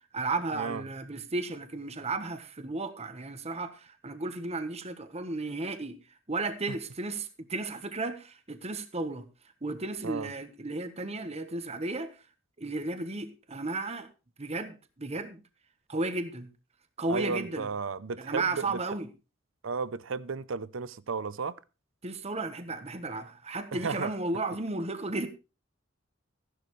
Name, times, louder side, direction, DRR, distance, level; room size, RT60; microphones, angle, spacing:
voice 1, 0.1-6.0 6.3-9.3 9.6-12.2 12.6-14.1 14.4-15.4 15.9-16.5 17.0-17.7 18.2-19.1 22.0-25.3, right 2 dB, 35° right, 1.2 m, -34 dB
voice 2, 17.1-18.8 19.6-21.6 23.7-24.1, right 5 dB, 75° right, 0.6 m, -34 dB
14.5 x 11.5 x 3.2 m
head